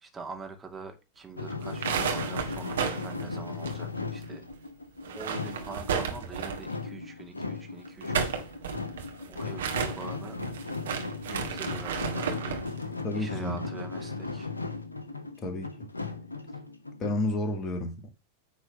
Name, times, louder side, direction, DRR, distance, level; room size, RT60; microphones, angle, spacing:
voice 1, 0.0-4.5 5.1-8.3 9.3-10.4 11.2-14.5, right 4 dB, 15° right, 2.2 m, -44 dB
sound 1, 1.4-17.1, left 3 dB, 80° left, 1.3 m, -37 dB
sound 2, 1.6-4.2 4.5-4.6 5.0-6.7 7.8-12.7, right 7 dB, 60° right, 1.9 m, -33 dB
voice 2, 13.0-13.6 15.4-15.9 17.0-18.1, left 2 dB, 30° left, 2.2 m, -31 dB
9.4 x 4.2 x 5.9 m
figure-of-eight pair, 90°, 0 cm